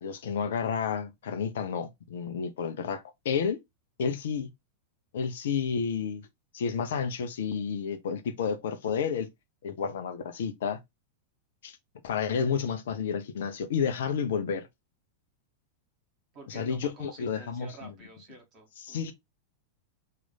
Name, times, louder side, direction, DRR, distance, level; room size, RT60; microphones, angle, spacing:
voice 1, 0.0-3.6 4.0-4.5 5.1-6.2 6.5-9.3 9.6-10.8 11.6-11.8 12.0-14.7 16.5-17.9 18.8-19.1, left 6 dB, 60° left, 0.6 m, -31 dB
voice 2, 16.3-19.1, right 2 dB, 35° right, 1.6 m, -49 dB
3.0 x 2.5 x 3.9 m
figure-of-eight pair, 90°, 0 cm